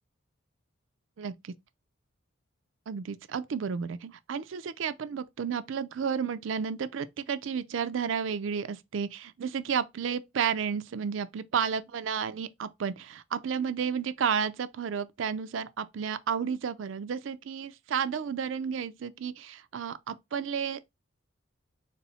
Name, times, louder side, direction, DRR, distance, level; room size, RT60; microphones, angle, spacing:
voice 1, 1.2-1.5 2.9-21.0, right 7 dB, 65° right, 0.4 m, -32 dB
4.1 x 2.0 x 4.1 m
head